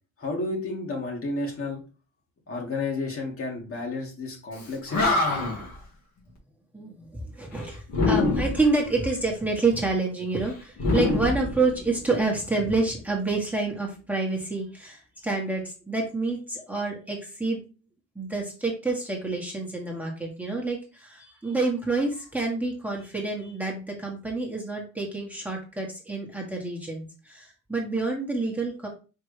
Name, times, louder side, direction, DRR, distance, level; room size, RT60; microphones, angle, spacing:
voice 1, 0.2-1.8 2.5-5.2, left 3 dB, 45° left, 0 dB, 1.9 m, -31 dB
Animal, 4.6-4.7 4.9-5.7 7.9-8.7 10.8-12.1, left 3 dB, 65° left, 1.9 m, -24 dB
voice 2, 6.7-17.6 18.1-28.9, right 3 dB, 5° right, -1 dB, 1.4 m, -28 dB
4.6 x 3.6 x 3.2 m, 0.33 s
cardioid pair, 90°, 30 cm